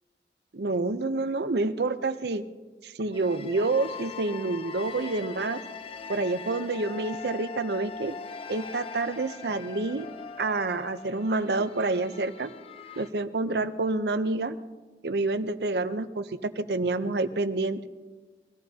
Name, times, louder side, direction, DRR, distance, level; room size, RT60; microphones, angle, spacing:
voice 1, 0.5-2.4 2.8-5.6 6.1-8.1 8.5-10.0 10.4-12.5 13.0-14.6 15.0-17.9, right 3 dB, 70° right, 11 dB, 0.7 m, -28 dB
sound 1, 3.1-13.1, left 5 dB, 30° left, 0.5 m, -41 dB
22.5 x 15.0 x 2.8 m, 1.3 s
head